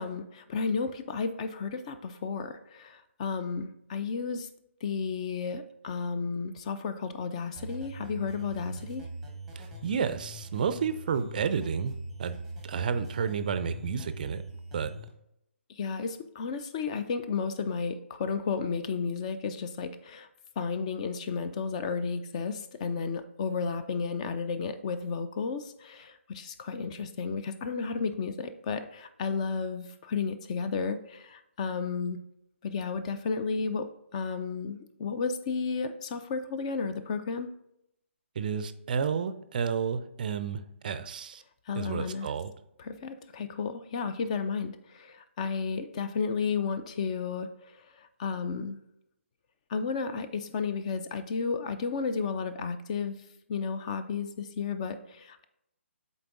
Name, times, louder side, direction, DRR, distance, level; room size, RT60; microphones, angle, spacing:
voice 1, 0.0-4.5 4.8-9.1 15.7-20.3 20.6-32.3 32.6-37.5 41.7-42.3 42.8-48.8 49.7-53.2 53.5-55.4, left 5 dB, 30° left, 10 dB, 0.4 m, -33 dB
sound 1, 7.5-15.1, right 2 dB, 5° right, 0.9 m, -42 dB
voice 2, 9.6-12.4 12.6-14.4 14.7-14.9 38.4-41.4 41.8-42.5, right 6 dB, 40° right, 11 dB, 0.4 m, -31 dB
10.5 x 4.0 x 2.5 m, 0.80 s
figure-of-eight pair, 140°, 7 cm